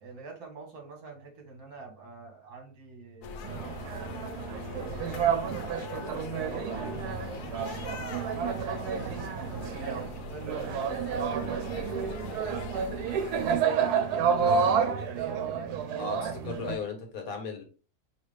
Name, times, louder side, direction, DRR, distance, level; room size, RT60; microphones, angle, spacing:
voice 1, 0.0-3.4 3.9-5.2 5.7-9.0 9.8-12.1 13.4-16.2, right 4 dB, 70° right, 1.7 m, -47 dB
sound 1, 3.2-13.6, left 5 dB, 85° left, 1.2 m, -42 dB
sound 2, 3.4-16.7, right 6 dB, 90° right, 1.2 m, -30 dB
voice 2, 16.0-17.6, left 5 dB, 65° left, 1.4 m, -36 dB
4.8 x 3.0 x 3.2 m
omnidirectional pair, 1.6 m